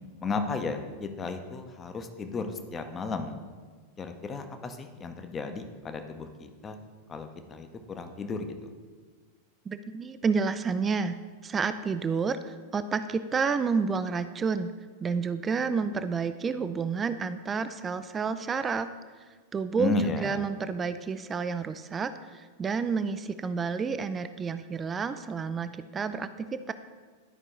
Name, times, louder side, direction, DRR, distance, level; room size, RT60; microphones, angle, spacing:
voice 1, 0.2-3.3 4.0-6.8 7.1-8.6 19.8-20.4, left 3 dB, 20° left, 7 dB, 0.7 m, -34 dB
voice 2, 9.7-11.2 11.4-14.7 15.0-18.9 19.5-26.7, right 5 dB, 20° right, 11 dB, 0.3 m, -30 dB
12.0 x 5.3 x 3.1 m, 1.5 s
figure-of-eight pair, 90°, 0 cm